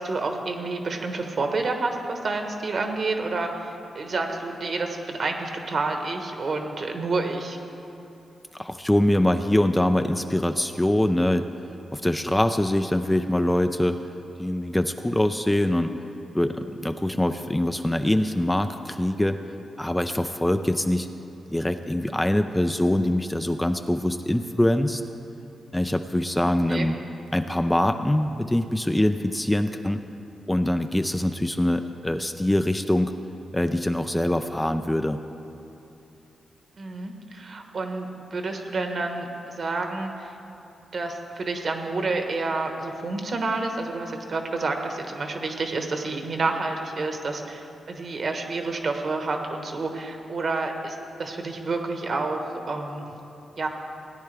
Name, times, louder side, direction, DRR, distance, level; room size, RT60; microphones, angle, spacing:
voice 1, 0.0-7.6 26.4-26.9 36.8-40.3 40.9-53.1 53.6-53.7, right 3 dB, 55° right, 4 dB, 1.2 m, -29 dB
voice 2, 8.5-11.5 11.9-14.0 14.4-15.9 16.3-19.4 19.8-21.1 21.5-25.0 25.7-27.0 27.3-30.0 30.5-33.1 33.5-35.2, left 1 dB, 10° left, 7 dB, 0.4 m, -23 dB
17.0 x 9.5 x 3.4 m, 2.8 s
cardioid pair, 85°, 0 cm